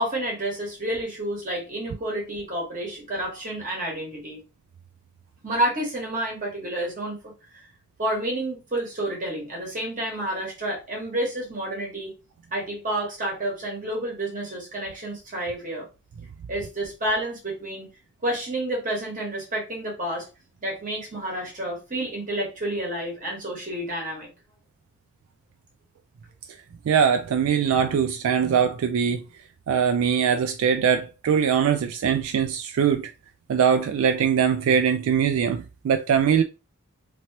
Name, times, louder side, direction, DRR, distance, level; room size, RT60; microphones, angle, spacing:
voice 1, 0.0-4.4 5.4-7.2 7.5-7.7 8.0-12.1 12.5-15.9 16.5-17.9 18.2-20.3 20.6-24.3, right 1 dB, 35° right, 1.3 m, -29 dB
voice 2, 26.9-29.2 29.7-33.1 33.5-36.4, right 7 dB, 75° right, 0.3 m, -22 dB
2.9 x 2.9 x 2.8 m
head